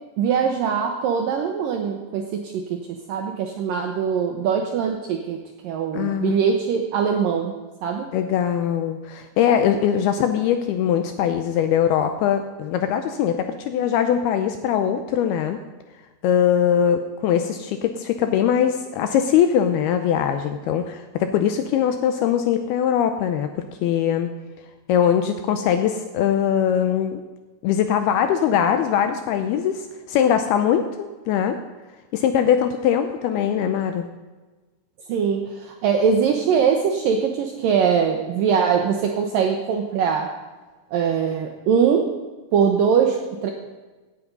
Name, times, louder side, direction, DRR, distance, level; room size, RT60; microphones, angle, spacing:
voice 1, 0.2-2.8 3.1-5.4 5.6-8.1 35.1-40.3 40.9-42.1 42.5-43.5, right 7 dB, 80° right, 3 dB, 2.0 m, -22 dB
voice 2, 5.9-6.4 8.1-15.6 16.2-23.5 23.8-24.3 24.9-27.2 27.6-31.6 32.1-34.1, left 9 dB, 80° left, 8 dB, 2.3 m, -21 dB
17.0 x 8.5 x 5.4 m, 1.2 s
omnidirectional pair, 5.1 m